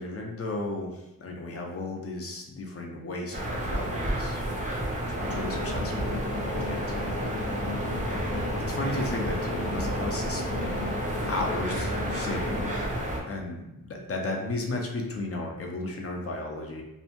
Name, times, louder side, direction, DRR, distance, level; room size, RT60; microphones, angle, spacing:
voice 1, 0.0-7.1 8.7-10.8 11.3-12.6 13.3-16.8, left 2 dB, 45° left, 0 dB, 0.4 m, -35 dB
sound 1, 3.3-13.2, right 1 dB, 25° right, 0.4 m, -31 dB
sound 2, 5.2-12.8, left 4 dB, 70° left, 0.7 m, -37 dB
2.7 x 2.1 x 2.8 m, 0.93 s
wide cardioid pair, 155°, 35 cm